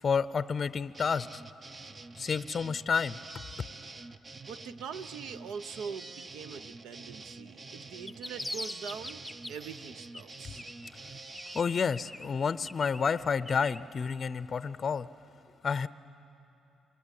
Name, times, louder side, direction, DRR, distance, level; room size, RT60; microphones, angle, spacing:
voice 1, 0.0-1.4 2.2-3.2 11.5-15.1 15.6-15.9, left 6 dB, 45° left, 15 dB, 0.5 m, -30 dB
sound 1, 0.9-11.6, right 3 dB, 30° right, 0.7 m, -47 dB
voice 2, 4.5-9.2 9.5-10.6, right 6 dB, 85° right, 12 dB, 0.8 m, -43 dB
sound 2, 7.9-9.8 10.1-11.1 11.3-13.8, left 1 dB, 5° left, 0.7 m, -43 dB
26.0 x 23.0 x 8.4 m, 2.8 s
cardioid pair, 90°, 0 cm